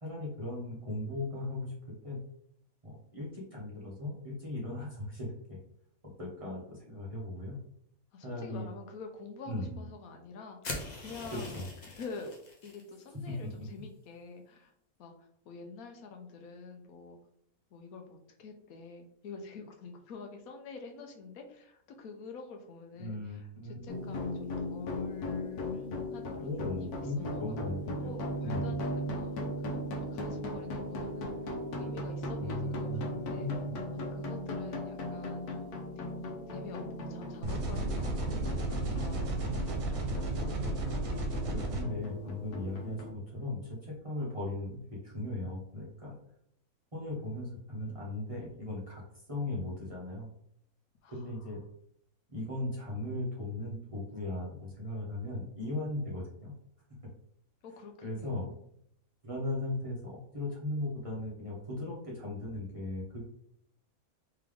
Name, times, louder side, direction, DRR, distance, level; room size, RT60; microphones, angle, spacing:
voice 1, 0.0-1.7 2.0-2.2 2.8-5.6 6.2-7.6 8.2-8.7 9.5-9.8 11.3-11.6 13.3-13.4 23.0-23.8 26.4-28.7 32.4-33.7 41.5-44.8 45.0-46.1 46.9-49.0 49.3-50.3 51.1-51.6 52.3-56.5 58.0-58.5 59.2-63.2, left 2 dB, 25° right, -5 dB, 0.8 m, -37 dB
voice 2, 8.1-12.3 12.6-14.7 15.0-17.2 17.7-25.9 26.1-27.6 28.0-33.6 33.9-36.0 36.5-40.9 51.0-51.5 57.6-58.6, left 4 dB, 75° left, 4 dB, 1.1 m, -48 dB
sound 1, 10.6-12.8, left 2 dB, 40° left, 0.7 m, -42 dB
sound 2, 23.9-43.1, left 1 dB, 90° left, 1.3 m, -38 dB
sound 3, 37.4-41.8, right 2 dB, 65° right, 1.2 m, -33 dB
3.4 x 3.3 x 3.5 m, 0.70 s
omnidirectional pair, 1.6 m